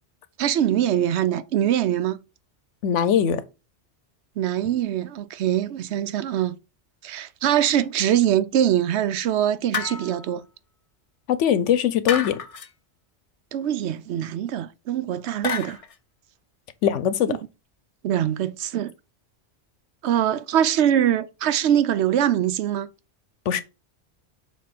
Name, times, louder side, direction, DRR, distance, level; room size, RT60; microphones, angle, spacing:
voice 1, 0.4-2.2 4.4-6.6 7.0-10.4 13.5-15.8 17.3-17.4 18.0-18.9 20.0-22.9, right 10 dB, 70° right, 0.8 m, -23 dB
voice 2, 2.8-3.4 11.3-12.4 16.8-17.4 23.5-23.6, left 9 dB, 85° left, 1.0 m, -21 dB
sound 1, 9.7-10.4 12.1-12.7 15.4-16.0, left 6 dB, 45° left, 0.5 m, -30 dB
7.0 x 3.0 x 5.8 m
omnidirectional pair, 1.2 m